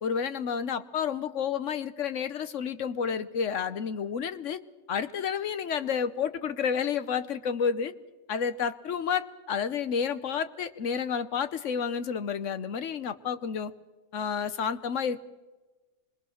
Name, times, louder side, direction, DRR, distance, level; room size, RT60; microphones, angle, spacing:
voice 1, 0.0-4.6 4.9-7.9 8.3-13.7 14.1-15.2, left 7 dB, 65° left, 13 dB, 1.2 m, -30 dB
25.5 x 22.0 x 6.4 m, 1.2 s
omnidirectional pair, 1.4 m